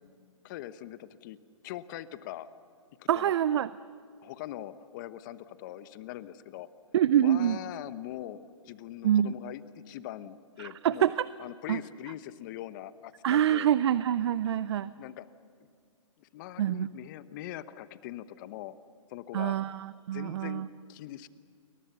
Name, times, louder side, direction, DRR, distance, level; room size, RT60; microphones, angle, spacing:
voice 1, 0.4-1.4 1.6-2.5 3.0-3.3 4.2-6.7 7.2-8.4 8.6-11.1 11.4-13.7 15.0-15.3 16.2-18.7 19.1-19.6 20.1-21.3, left 13 dB, 40° left, 14 dB, 1.1 m, -42 dB
voice 2, 3.1-3.7 6.9-7.6 9.0-9.3 10.6-11.3 11.7-11.8 13.2-14.9 16.6-16.9 19.3-20.7, right 10 dB, 55° right, 16 dB, 0.6 m, -26 dB
29.5 x 22.5 x 7.0 m, 2.2 s
hypercardioid pair, 135°, 17 cm